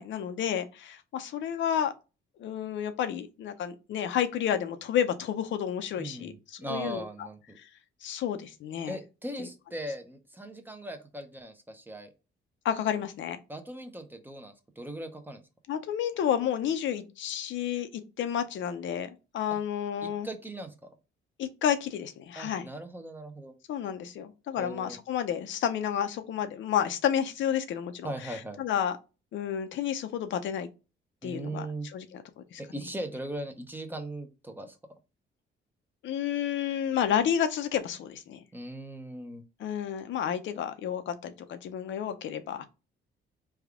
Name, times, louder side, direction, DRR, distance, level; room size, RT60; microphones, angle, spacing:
voice 1, 0.0-1.9 2.4-7.3 7.6-7.7 8.0-9.0 12.6-13.4 15.7-20.3 21.4-22.7 23.7-28.1 28.6-28.9 29.3-30.7 31.2-31.7 31.9-32.6 36.0-38.4 39.6-42.6, left 9 dB, 70° left, 0.6 m, -31 dB
voice 2, 6.0-7.6 8.9-12.1 13.5-15.4 20.0-20.9 22.4-23.5 24.6-25.0 28.0-28.6 31.2-31.9 32.6-34.8 38.5-39.4, right 1 dB, 10° right, 0.7 m, -39 dB
3.4 x 2.3 x 3.5 m
cardioid pair, 90°, 20 cm